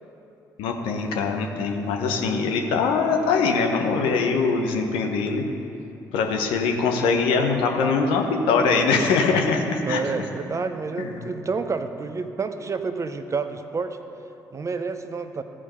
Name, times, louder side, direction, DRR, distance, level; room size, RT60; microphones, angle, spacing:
voice 1, 0.6-5.4 6.1-10.0 11.0-11.3, left 4 dB, 70° left, 3 dB, 1.0 m, -22 dB
voice 2, 9.8-14.0 14.5-15.4, right 4 dB, 35° right, 8 dB, 0.7 m, -29 dB
15.0 x 5.0 x 5.6 m, 2.8 s
hypercardioid pair, 45°, 9 cm